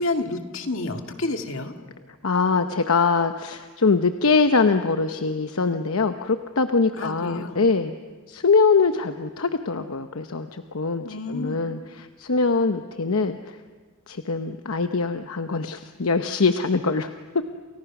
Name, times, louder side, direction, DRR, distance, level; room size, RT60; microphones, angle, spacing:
voice 1, 0.0-1.7 7.0-7.6 11.0-11.6, left 2 dB, 65° left, 5 dB, 2.1 m, -29 dB
voice 2, 2.2-8.0 8.3-13.6 14.1-17.4, left 4 dB, 80° left, 7 dB, 0.9 m, -23 dB
29.0 x 29.0 x 6.1 m, 1.5 s
head